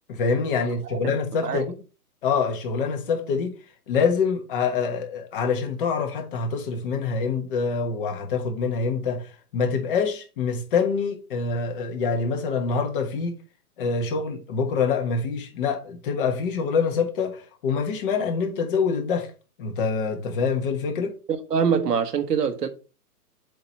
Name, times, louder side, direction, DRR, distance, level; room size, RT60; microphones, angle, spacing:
voice 1, 0.1-1.7 2.2-3.5 3.9-9.2 9.5-13.4 13.8-19.3 19.6-21.2, left 5 dB, 35° left, 1.4 m, -25 dB
voice 2, 21.3-22.7, right 6 dB, 85° right, 1.4 m, -24 dB
7.7 x 3.0 x 5.9 m
hypercardioid pair, 150°, 46 cm